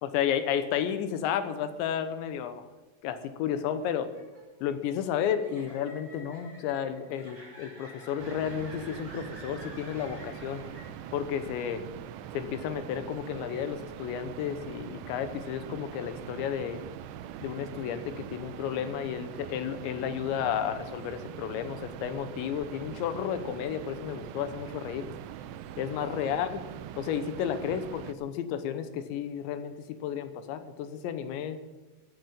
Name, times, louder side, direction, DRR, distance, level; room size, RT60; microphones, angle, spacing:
voice 1, 0.0-2.7 3.0-4.1 4.6-10.6 11.1-11.8 12.3-16.8 17.4-25.1 25.8-26.6 27.0-29.7 30.0-31.6, left 9 dB, 90° left, 10 dB, 3.3 m, -32 dB
sound 1, 3.8-11.4, equal, 15° right, 6.0 m, -50 dB
sound 2, 8.2-28.1, right 10 dB, 80° right, 2.7 m, -42 dB
15.5 x 9.4 x 7.0 m, 1.1 s
omnidirectional pair, 5.1 m